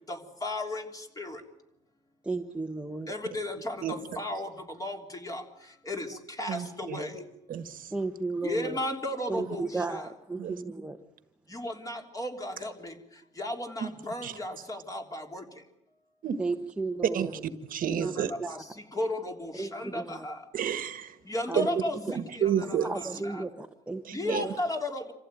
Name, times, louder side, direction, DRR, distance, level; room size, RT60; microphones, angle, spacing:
voice 1, 0.1-1.4 3.1-7.2 8.4-10.1 11.5-13.0 13.3-15.6 18.0-20.5 21.2-22.0 22.3-23.5 24.1-25.1, left 1 dB, 20° left, 3.4 m, -35 dB
voice 2, 2.2-3.1 7.9-8.8 9.3-11.0 16.4-17.3 18.0-18.1 18.4-18.5 19.6-20.3 21.5-21.7 22.1-22.2 22.8-24.5, right 3 dB, 5° right, 1.2 m, -34 dB
voice 3, 6.5-7.0 7.5-7.9 10.4-10.6 13.8-13.9 14.2-14.4 16.2-16.4 17.1-17.4 17.7-18.3 20.5-21.2 21.5-21.8 22.1-23.1 24.0-24.4, right 9 dB, 55° right, 1.6 m, -31 dB
27.0 x 15.5 x 9.2 m
cardioid pair, 110°, 17 cm